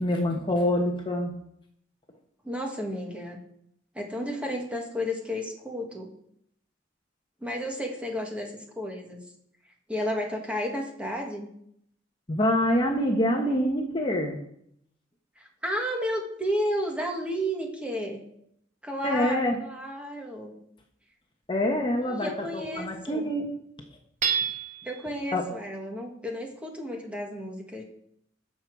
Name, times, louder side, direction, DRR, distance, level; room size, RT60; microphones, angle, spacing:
voice 1, 0.0-1.4 12.3-14.4 19.0-19.6 21.5-23.5 25.3-25.4, left 1 dB, 25° left, 2 dB, 1.1 m, -26 dB
voice 2, 2.4-3.4 3.9-6.1 7.4-9.2 9.9-11.5 15.4-18.2 18.8-20.5 22.0-23.3 24.8-27.8, equal, 5° right, 1 dB, 1.7 m, -32 dB
Hammer / Chink clink, 24.2-25.0, right 6 dB, 40° right, 1.8 m, -28 dB
16.0 x 7.0 x 4.8 m, 0.72 s
head